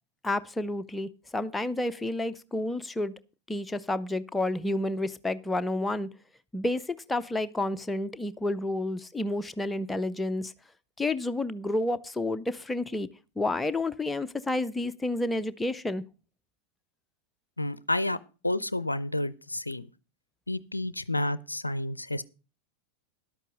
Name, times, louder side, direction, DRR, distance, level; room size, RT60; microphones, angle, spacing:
voice 1, 0.2-3.1 3.5-6.1 6.5-10.5 11.0-13.1 13.4-16.0, left 2 dB, 10° left, 0.6 m, -30 dB
voice 2, 17.6-18.2 18.4-19.9 20.5-22.2, left 1 dB, 85° left, 0.4 m, -30 dB
11.5 x 8.3 x 5.3 m
figure-of-eight pair, 90°, 0 cm